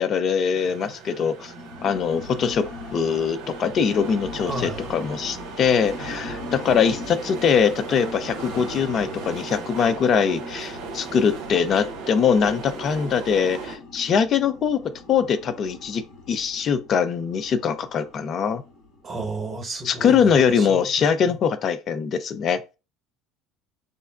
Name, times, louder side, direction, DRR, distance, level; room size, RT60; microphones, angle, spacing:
voice 1, 0.0-1.5 1.8-2.7 2.9-14.8 15.1-16.0 16.3-18.6 19.8-22.7, left 7 dB, 45° left, 0.4 m, -22 dB
sound 1, 0.5-13.8, right 5 dB, 65° right, 0.6 m, -37 dB
sound 2, 1.3-20.0, left 3 dB, 70° left, 0.8 m, -41 dB
voice 2, 4.5-5.0 19.0-20.1 20.5-21.4, right 2 dB, 25° right, 1.0 m, -33 dB
3.7 x 2.0 x 2.3 m
figure-of-eight pair, 65°, 0 cm